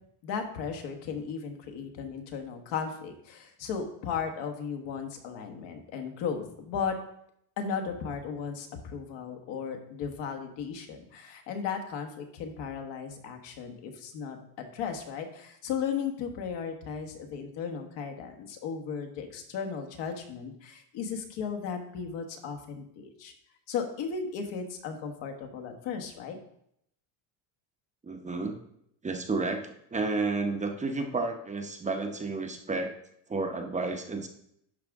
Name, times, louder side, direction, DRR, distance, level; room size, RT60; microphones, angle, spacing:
voice 1, 0.2-7.0 7.6-23.3 23.7-26.4, left 6 dB, 65° left, 5 dB, 1.5 m, -36 dB
voice 2, 28.0-28.5 29.0-32.9 33.3-34.3, right 3 dB, 15° right, 4 dB, 0.8 m, -31 dB
11.5 x 5.0 x 3.6 m, 0.73 s
cardioid pair, 140°, 46 cm